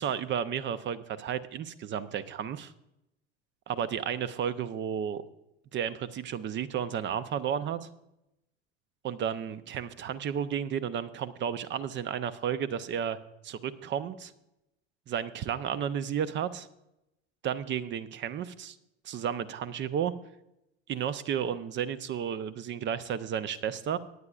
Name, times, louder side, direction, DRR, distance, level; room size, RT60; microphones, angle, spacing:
voice 1, 0.0-2.7 3.7-5.2 5.7-7.9 9.0-13.2 13.4-14.3 15.1-16.7 17.4-18.8 19.0-20.1 20.9-24.0, right 8 dB, 35° right, 14 dB, 0.7 m, -32 dB
18.5 x 9.8 x 2.4 m, 0.86 s
hypercardioid pair, 80°, 34 cm